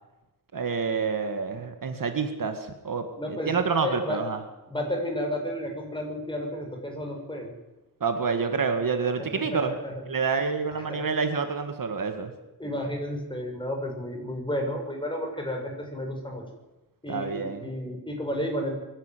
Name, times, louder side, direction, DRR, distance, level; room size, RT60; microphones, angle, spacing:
voice 1, 0.5-4.4 8.0-9.7 10.1-12.3 17.1-17.7, right 5 dB, 55° right, 7 dB, 2.1 m, -28 dB
voice 2, 3.2-3.5 3.8-4.2 4.7-7.5 9.3-9.9 10.9-11.0 12.6-16.4 17.0-18.7, left 1 dB, 10° left, 1 dB, 6.5 m, -32 dB
24.5 x 11.5 x 9.3 m, 1.0 s
wide cardioid pair, 90°, 39 cm